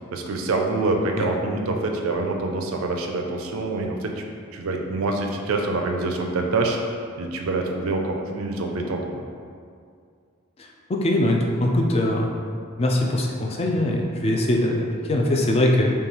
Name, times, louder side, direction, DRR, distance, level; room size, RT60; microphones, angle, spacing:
voice 1, 0.1-6.8 7.2-9.2, right 2 dB, 85° right, 2 dB, 0.4 m, -26 dB
voice 2, 10.9-12.3 12.8-15.9, left 1 dB, 30° left, 0 dB, 0.4 m, -21 dB
5.4 x 2.3 x 3.1 m, 2.3 s
head